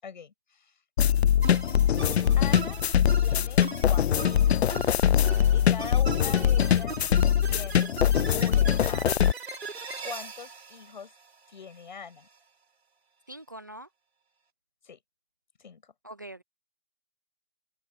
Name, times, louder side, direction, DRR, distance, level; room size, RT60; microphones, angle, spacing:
voice 1, 0.0-0.7 2.4-2.8 3.1-4.6 5.5-7.0 7.4-8.0 8.3-9.2 10.0-11.1 11.5-12.3 14.8-15.0 15.6-15.9, left 6 dB, 50° left, 7.9 m, -42 dB
sound 1, 1.0-9.3, left 9 dB, 85° left, 0.5 m, -22 dB
sound 2, 1.4-11.8, right 4 dB, 80° right, 4.5 m, -40 dB
voice 2, 13.3-13.9 16.0-16.4, right 1 dB, 20° right, 0.6 m, -43 dB
hypercardioid pair, 170°, 31 cm